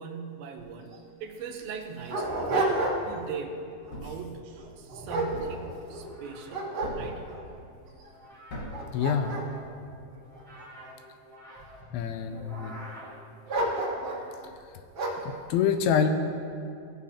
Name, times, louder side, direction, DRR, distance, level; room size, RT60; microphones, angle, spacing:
voice 1, 0.0-2.3 3.0-3.6 4.0-7.3 13.5-13.6, right 6 dB, 80° right, 3 dB, 2.4 m, -40 dB
Dog, 0.6-0.7 0.9-1.0 1.6-3.2 3.7-4.0 4.6-6.1 6.5-7.4 8.0-8.1 8.6-10.9 11.6-12.2 13.5-14.3 14.9-15.3, right 2 dB, 50° right, 1.1 m, -31 dB
Thump thud, 3.9-4.3 5.3-5.7 6.8-7.2 8.5-8.9, left 1 dB, 50° left, 2.2 m, -39 dB
sound 1, 5.9-14.5, right 1 dB, 5° left, 0.4 m, -49 dB
voice 2, 8.9-9.3 11.9-12.7 15.5-16.1, left 7 dB, 85° left, 7 dB, 2.4 m, -25 dB
17.0 x 7.2 x 2.9 m, 2.5 s
omnidirectional pair, 4.4 m